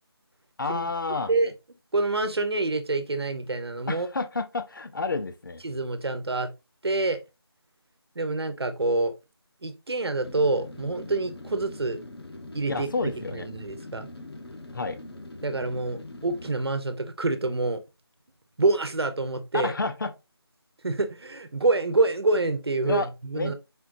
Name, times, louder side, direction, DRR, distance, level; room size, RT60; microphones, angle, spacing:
voice 1, 0.6-1.3 3.9-5.6 12.7-13.5 14.7-15.0 19.5-20.1 22.9-23.1 23.3-23.5, left 3 dB, 50° left, 0.6 m, -30 dB
voice 2, 1.9-4.1 5.6-6.5 6.8-7.2 8.2-9.1 9.6-12.0 12.5-14.1 15.4-17.8 18.6-19.7 20.8-23.5, right 2 dB, 75° right, 0.9 m, -27 dB
sound 1, 10.2-16.5, left 2 dB, 70° left, 1.1 m, -42 dB
4.3 x 3.8 x 2.6 m
figure-of-eight pair, 170°, 14 cm